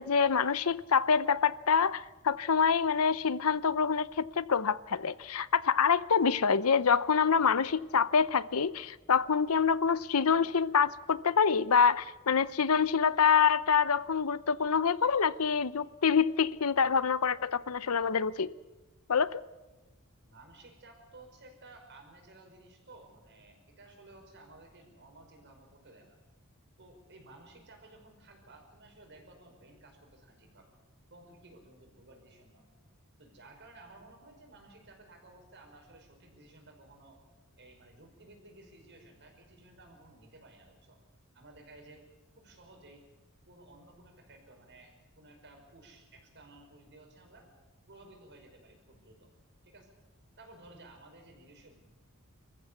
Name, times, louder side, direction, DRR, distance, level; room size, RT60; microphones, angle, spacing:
voice 1, 0.0-18.5 19.1-19.4, left 6 dB, 80° left, 0.7 m, -26 dB
voice 2, 20.2-26.2 26.8-30.7 31.1-32.7 33.2-37.2 37.6-41.0 41.3-42.0 42.4-43.1 43.5-47.5 47.9-49.3 49.6-50.0 50.4-51.8, right 2 dB, 55° right, 5.3 m, -55 dB
26.0 x 14.5 x 8.2 m
head